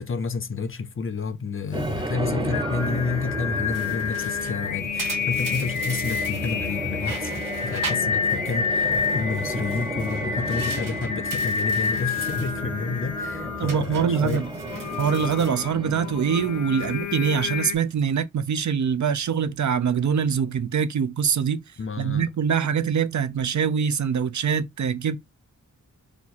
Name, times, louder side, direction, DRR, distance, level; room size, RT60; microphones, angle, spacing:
voice 1, 0.0-7.3 7.6-14.4 21.8-22.3, left 4 dB, 40° left, 0.5 m, -30 dB
sound 1, 1.7-18.0, right 2 dB, 15° right, 0.4 m, -34 dB
Singing, 1.8-17.8, left 6 dB, 70° left, 0.8 m, -29 dB
sound 2, 3.7-6.7 7.0-8.6 8.9-12.6 12.9-13.2 13.7-16.2 16.6-16.9 17.5-18.1, right 5 dB, 85° right, 1.2 m, -40 dB
voice 2, 13.6-14.5 15.0-21.6 22.0-25.2, right 7 dB, 65° right, 0.6 m, -24 dB
4.4 x 2.4 x 4.0 m
wide cardioid pair, 120°, 32 cm